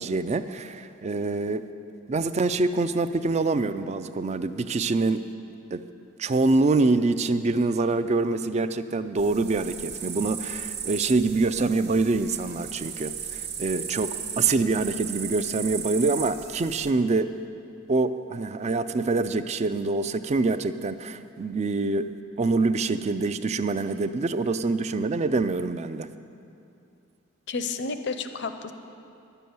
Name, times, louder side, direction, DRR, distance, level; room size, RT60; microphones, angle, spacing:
voice 1, 0.0-1.6 2.1-5.3 5.7-5.8 6.2-17.3 17.9-22.1 22.4-26.1, right 3 dB, 35° right, 12 dB, 0.4 m, -25 dB
sound 1, 9.2-16.9, right 7 dB, 55° right, 1.1 m, -36 dB
voice 2, 27.5-28.7, left 4 dB, 60° left, 8 dB, 0.7 m, -31 dB
11.0 x 6.9 x 9.3 m, 2.6 s
head